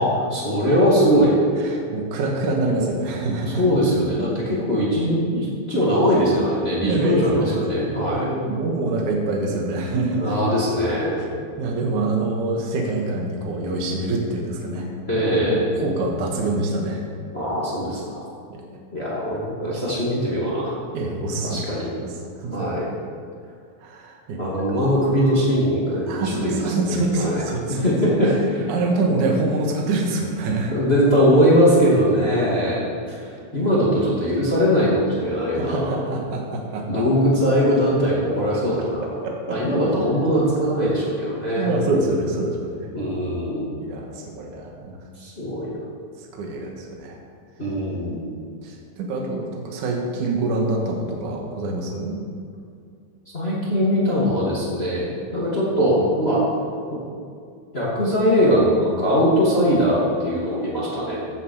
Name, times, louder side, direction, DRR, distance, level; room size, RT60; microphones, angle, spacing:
voice 1, 0.0-1.4 3.6-8.3 10.2-11.3 15.1-15.7 17.3-18.3 18.9-20.7 21.4-21.9 22.5-22.9 24.4-26.6 26.9-27.4 27.8-28.6 29.1-29.2 30.7-36.0 36.9-39.0 39.5-41.8 42.9-43.7 45.2-45.7 47.6-48.3 53.3-56.5 56.9-57.0 57.7-61.2, equal, 25° left, -6 dB, 1.3 m, -21 dB
voice 2, 1.6-3.7 6.8-10.4 11.6-14.9 15.3-17.0 18.5-18.6 20.9-22.1 22.4-22.7 23.8-24.4 24.7-24.8 26.0-27.8 28.7-30.7 33.6-33.7 35.5-37.0 39.2-39.6 41.6-42.9 43.8-45.0 46.2-47.2 48.3-52.2, right 2 dB, 55° right, 0 dB, 2.6 m, -26 dB
15.0 x 10.5 x 4.9 m, 2.3 s
omnidirectional pair, 5.5 m